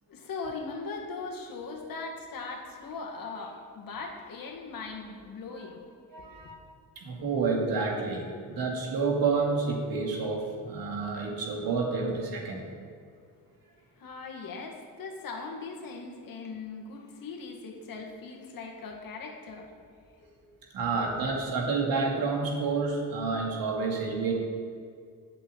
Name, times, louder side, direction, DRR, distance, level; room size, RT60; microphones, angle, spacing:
voice 1, 0.1-5.9 6.3-6.6 14.0-19.7, left 4 dB, 75° left, 1 dB, 2.0 m, -39 dB
voice 2, 6.1-6.6 7.0-12.6 20.4-20.5 20.7-24.3, right 4 dB, 80° right, 0 dB, 2.4 m, -29 dB
8.6 x 7.5 x 7.9 m, 2.2 s
cardioid pair, 95°, 35 cm